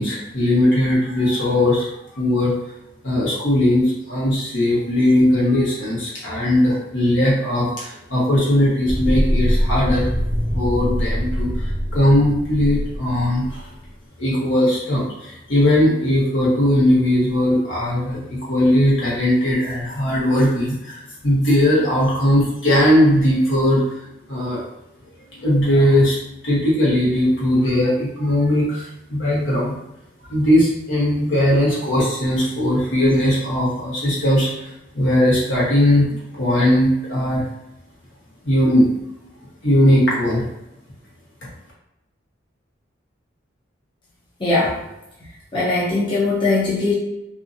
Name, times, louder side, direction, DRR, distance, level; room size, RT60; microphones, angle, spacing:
voice 1, 0.0-1.9 2.1-2.5 3.0-10.1 10.5-11.5 11.9-13.7 14.2-23.8 24.3-24.6 25.4-26.2 26.4-29.7 30.3-34.7 34.9-36.0 36.3-37.5 38.4-38.9 39.6-40.5, left 1 dB, 75° left, -6 dB, 1.2 m, -18 dB
sound 1, 8.9-13.6, equal, 25° right, 0.6 m, -23 dB
voice 2, 44.4-44.8 45.5-46.9, left 3 dB, 25° left, -8 dB, 0.6 m, -20 dB
2.8 x 2.6 x 2.5 m, 0.89 s
head